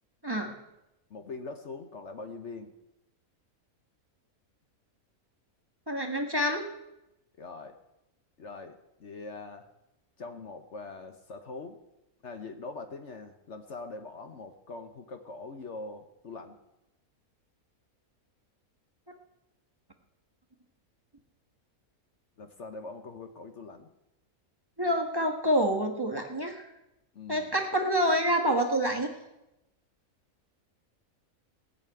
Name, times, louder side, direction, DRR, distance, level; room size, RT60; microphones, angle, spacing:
voice 1, 0.2-0.5 5.9-6.7 24.8-26.7 27.3-29.1, equal, 15° right, 3 dB, 1.4 m, -27 dB
voice 2, 1.1-2.7 7.4-7.8 8.4-9.7 10.2-11.8 12.2-16.6 22.4-23.9 27.1-27.5, left 3 dB, 55° left, 6 dB, 1.2 m, -42 dB
17.5 x 6.7 x 9.1 m, 0.91 s
omnidirectional pair, 1.5 m